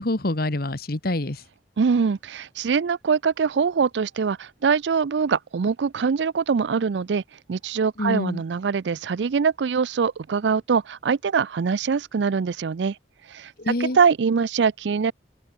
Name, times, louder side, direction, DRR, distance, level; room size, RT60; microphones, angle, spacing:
voice 1, 0.0-1.4 8.0-8.4 13.6-14.0, left 1 dB, 60° left, 1.7 m, -26 dB
voice 2, 1.8-7.2 7.5-13.0 13.3-15.1, right 5 dB, 75° right, 0.4 m, -23 dB
head